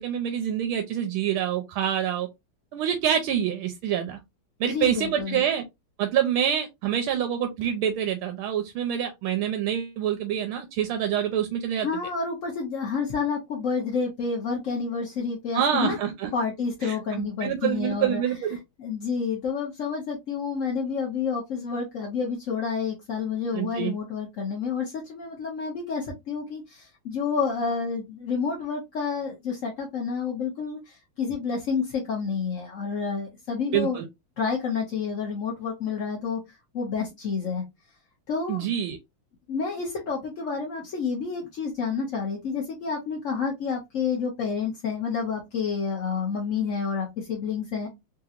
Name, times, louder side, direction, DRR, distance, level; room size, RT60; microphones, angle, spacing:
voice 1, 0.0-2.3 2.7-4.2 4.6-5.6 6.0-11.9 15.5-16.3 16.8-18.6 23.5-23.9 33.7-34.0 38.5-39.0, right 9 dB, 80° right, 1.4 m, -26 dB
voice 2, 4.6-5.4 11.8-16.0 16.3-18.2 18.8-34.0 34.4-37.6 38.3-38.6 39.5-47.9, left 5 dB, 60° left, 0.8 m, -29 dB
3.7 x 2.8 x 2.4 m
omnidirectional pair, 2.4 m